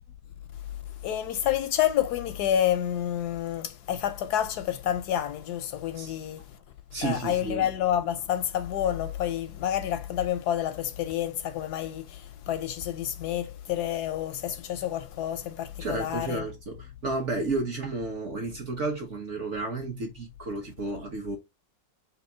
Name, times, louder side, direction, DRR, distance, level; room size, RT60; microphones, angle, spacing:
voice 1, 1.0-6.6 7.0-16.4, left 11 dB, 70° left, 1.0 m, -29 dB
voice 2, 6.9-7.6 15.8-21.4, right 3 dB, 50° right, 0.9 m, -32 dB
3.5 x 2.8 x 4.2 m
omnidirectional pair, 2.1 m